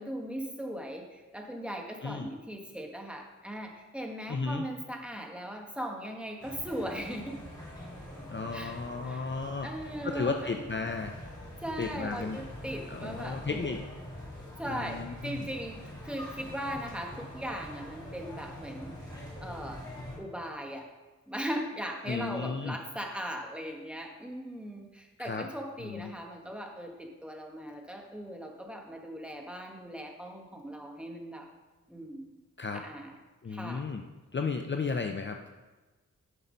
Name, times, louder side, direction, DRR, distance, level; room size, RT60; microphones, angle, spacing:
voice 1, 0.0-7.4 8.5-8.8 9.0-9.3 9.6-10.5 11.6-13.7 14.6-19.1 19.4-19.8 20.2-20.9 21.3-31.5 31.9-32.3 32.7-33.1 33.5-33.8, equal, 5° right, 1 dB, 1.5 m, -39 dB
voice 2, 4.3-4.6 8.3-9.7 10.0-11.2 11.8-12.4 12.9-13.8 14.7-15.5 22.1-22.8 25.2-25.5 25.8-26.1 32.6-32.8 33.4-34.0 34.3-35.5, left 4 dB, 40° left, 4 dB, 0.6 m, -34 dB
sound 1, 6.4-20.2, left 1 dB, 15° left, 3.5 m, -44 dB
11.0 x 5.8 x 5.2 m, 1.2 s
wide cardioid pair, 90°, 31 cm